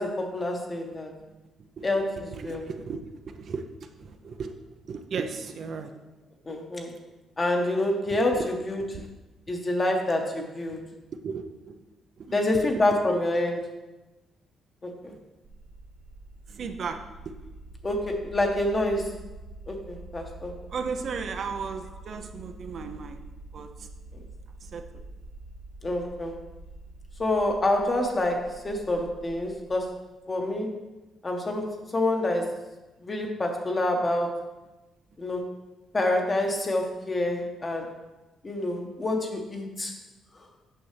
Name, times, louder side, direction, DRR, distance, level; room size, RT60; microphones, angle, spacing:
voice 1, 0.0-1.1 1.8-2.7 6.4-6.9 7.4-8.8 9.5-10.8 12.3-13.7 14.8-15.1 17.8-19.1 19.7-20.5 24.1-24.2 25.8-26.4 27.2-29.9 30.3-30.7 31.2-32.6 33.0-34.4 35.2-35.5 35.9-37.9 38.4-39.9, left 1 dB, 30° left, 2 dB, 1.2 m, -27 dB
voice 2, 2.3-4.6 4.9-5.9 8.0-8.5 8.9-9.1 10.7-10.8 11.2-11.8 12.2-12.7 15.0-15.2 16.5-17.4 20.7-23.2 23.5-23.9 24.6-24.8, right 5 dB, 55° right, 6 dB, 0.6 m, -36 dB
sound 1, 15.4-29.9, right 2 dB, 75° right, 1.0 m, -46 dB
8.6 x 5.5 x 3.3 m, 1.1 s
cardioid pair, 90°, 0 cm